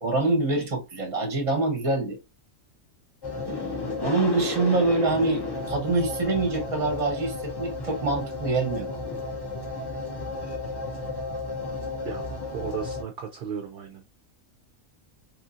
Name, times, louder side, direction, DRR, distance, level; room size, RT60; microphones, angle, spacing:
voice 1, 0.0-2.2 3.6-9.1, right 3 dB, 30° right, 0.8 m, -25 dB
sound 1, 3.2-13.0, left 3 dB, 35° left, 0.4 m, -33 dB
voice 2, 12.5-14.0, right 7 dB, 60° right, 0.6 m, -35 dB
3.1 x 2.7 x 2.5 m
omnidirectional pair, 1.4 m